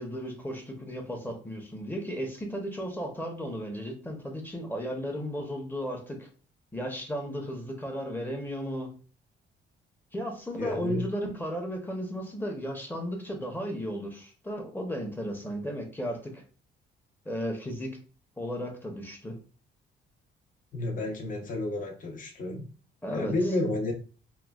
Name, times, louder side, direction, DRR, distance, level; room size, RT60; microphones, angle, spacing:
voice 1, 0.0-6.3 6.7-8.9 10.1-16.4 17.2-18.0 18.4-19.4 23.0-23.3, equal, 10° left, 2 dB, 0.7 m, -34 dB
voice 2, 10.6-11.1 20.7-22.7 23.1-23.9, left 2 dB, 40° left, 2 dB, 0.8 m, -31 dB
3.0 x 2.2 x 2.3 m, 0.37 s
cardioid pair, 90°, 20 cm